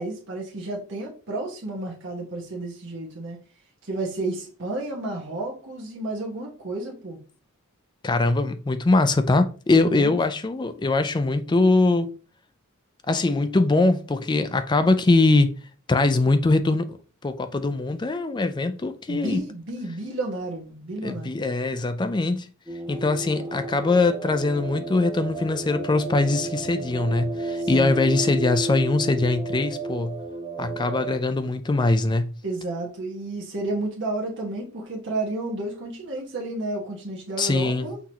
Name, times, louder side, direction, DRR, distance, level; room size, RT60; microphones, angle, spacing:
voice 1, 0.0-3.4 3.8-7.2 9.8-10.1 19.1-21.4 27.6-28.0 32.4-38.0, right 2 dB, 60° right, 1.1 m, -31 dB
voice 2, 8.0-12.1 13.1-15.5 15.9-16.9 17.2-19.4 21.0-22.5 22.9-30.2 30.6-32.3 37.4-37.9, left 2 dB, 20° left, 0.4 m, -22 dB
sound 1, 22.7-31.2, right 2 dB, 10° right, 1.2 m, -32 dB
5.7 x 3.0 x 2.8 m
head